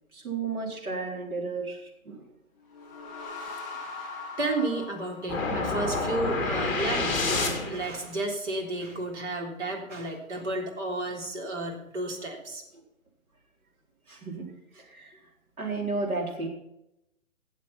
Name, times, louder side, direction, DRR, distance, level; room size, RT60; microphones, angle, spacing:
voice 1, 0.1-2.2 14.1-15.2 15.6-16.5, right 3 dB, 85° right, 0 dB, 4.4 m, -33 dB
sound 1, 2.6-6.1, left 4 dB, 20° left, 4.6 m, -41 dB
voice 2, 4.4-12.6, right 2 dB, 55° right, 1 dB, 3.6 m, -32 dB
sound 2, 5.3-8.0, left 3 dB, 5° left, 2.1 m, -28 dB
16.5 x 7.4 x 5.9 m, 0.87 s
hypercardioid pair, 160°, 42 cm